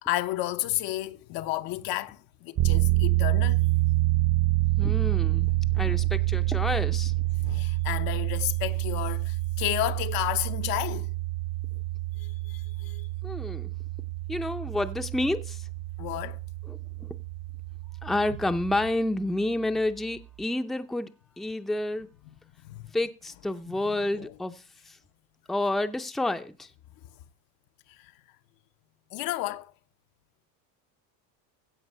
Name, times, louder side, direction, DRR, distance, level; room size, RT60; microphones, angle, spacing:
voice 1, 0.0-3.6 5.6-5.8 7.4-11.1 12.2-13.1 16.0-16.4 22.6-22.9 23.7-23.8 24.2-24.3 29.1-29.7, left 15 dB, 60° left, 0.8 m, -32 dB
sound 1, 2.6-18.9, right 17 dB, 55° right, 1.2 m, -27 dB
voice 2, 4.8-7.1 13.2-13.7 14.3-15.7 16.6-17.2 18.0-21.1 21.4-22.1 22.9-25.0 25.5-26.7, left 1 dB, ahead, 0.6 m, -30 dB
16.0 x 5.4 x 5.4 m
supercardioid pair, 115°, 38 cm